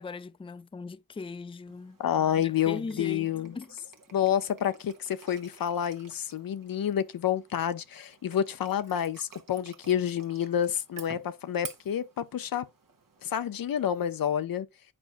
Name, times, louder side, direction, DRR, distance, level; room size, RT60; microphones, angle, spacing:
voice 1, 0.0-2.0 2.4-3.3 3.5-3.7, left 4 dB, 15° left, 0.4 m, -39 dB
sound 1, 1.7-14.3, right 6 dB, 75° right, 1.2 m, -52 dB
voice 2, 2.0-3.5 4.1-12.7 13.2-14.7, left 9 dB, 85° left, 0.6 m, -29 dB
8.6 x 4.5 x 2.5 m
cardioid pair, 45°, 34 cm